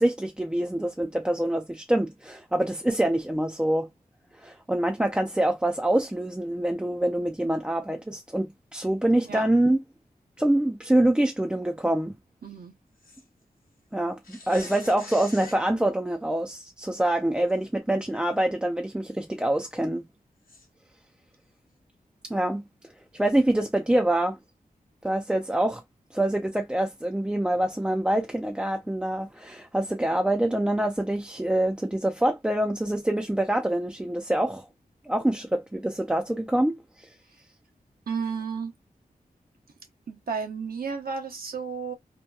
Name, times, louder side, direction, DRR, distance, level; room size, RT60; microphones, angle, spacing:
voice 1, 0.0-3.9 4.4-9.8 10.4-12.1 13.9-20.0 22.2-22.7 23.1-24.4 25.0-25.8 26.1-34.7 35.0-37.1, right 1 dB, 5° right, 0.3 m, -25 dB
voice 2, 12.4-12.7 38.1-38.7 40.1-41.9, right 5 dB, 75° right, 0.8 m, -32 dB
sound 1, 13.0-13.2 14.2-15.6 17.5-17.6 18.2-18.3 20.5-20.7, left 3 dB, 65° left, 0.9 m, -44 dB
2.8 x 2.2 x 2.3 m
wide cardioid pair, 80°, 15 cm